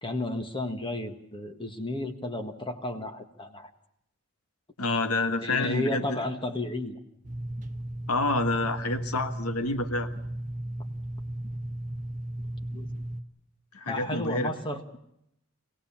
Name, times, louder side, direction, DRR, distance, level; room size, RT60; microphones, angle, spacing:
voice 1, 0.0-3.7 5.4-7.0 12.7-12.9 13.9-15.0, left 2 dB, 25° left, 6 dB, 1.6 m, -33 dB
voice 2, 4.8-6.2 8.1-10.1 13.7-14.5, left 2 dB, 80° left, 9 dB, 1.5 m, -28 dB
sound 1, 7.2-13.2, right 1 dB, 35° right, 1.4 m, -35 dB
26.0 x 17.0 x 7.2 m, 0.78 s
head